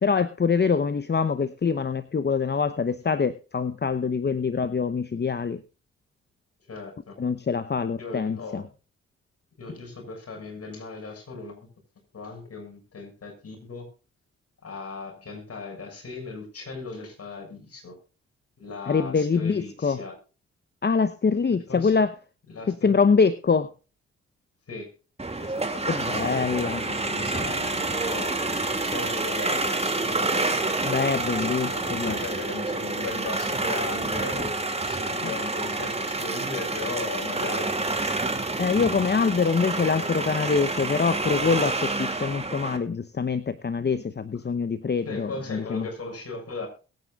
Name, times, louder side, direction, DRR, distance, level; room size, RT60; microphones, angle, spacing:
voice 1, 0.0-5.6 7.2-8.6 18.9-20.0 20.8-22.1 22.7-23.7 25.9-26.8 30.8-32.2 35.2-35.3 38.6-45.9, left 5 dB, 35° left, 12 dB, 0.9 m, -24 dB
voice 2, 6.7-7.1 8.0-8.6 9.6-11.6 12.1-13.9 14.6-17.9 18.6-20.1 21.7-21.9 22.5-22.9 24.7-24.9 25.4-26.0 26.6-28.4 28.8-30.6 31.6-34.5 34.8-37.8 39.7-40.1 45.0-46.7, left 3 dB, 50° left, 3 dB, 6.5 m, -37 dB
sound 1, 25.2-42.8, right 2 dB, 20° right, 2.5 m, -28 dB
21.5 x 9.3 x 2.4 m, 0.34 s
hypercardioid pair, 45°, 30 cm